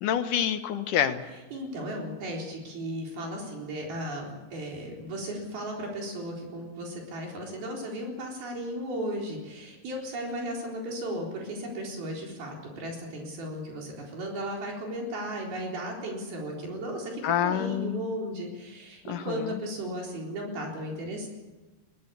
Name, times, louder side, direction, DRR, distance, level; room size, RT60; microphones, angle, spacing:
voice 1, 0.0-1.2 17.2-18.0 19.1-19.5, left 10 dB, 65° left, 9 dB, 2.5 m, -27 dB
voice 2, 1.5-21.3, right 1 dB, 75° right, -1 dB, 5.9 m, -35 dB
22.0 x 18.5 x 8.4 m, 1.2 s
omnidirectional pair, 4.3 m